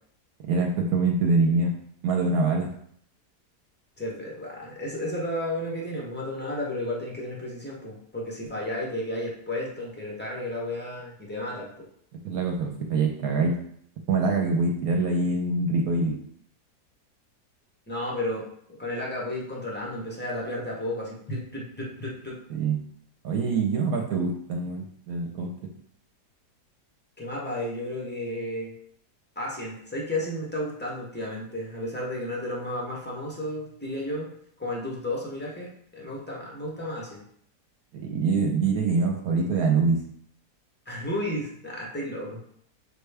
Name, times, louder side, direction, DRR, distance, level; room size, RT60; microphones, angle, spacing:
voice 1, 0.5-1.7 2.0-2.7 12.2-13.6 14.1-16.2 22.5-22.8 23.2-25.7 37.9-40.0, right 3 dB, 70° right, 1 dB, 1.0 m, -24 dB
voice 2, 4.0-11.9 17.9-18.5 18.8-22.4 27.2-28.7 29.4-34.3 34.6-37.2 40.9-42.4, left 1 dB, 15° left, -4 dB, 0.3 m, -33 dB
6.5 x 2.2 x 3.3 m, 0.66 s
omnidirectional pair, 1.8 m